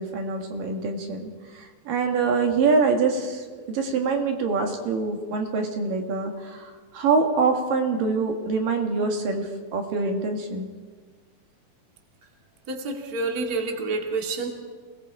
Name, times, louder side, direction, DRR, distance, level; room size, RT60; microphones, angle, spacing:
voice 1, 0.0-10.7, right 4 dB, 70° right, 3 dB, 3.3 m, -25 dB
voice 2, 12.7-14.5, right 3 dB, 30° right, 2 dB, 2.2 m, -28 dB
28.5 x 19.5 x 4.8 m, 1.5 s
omnidirectional pair, 4.1 m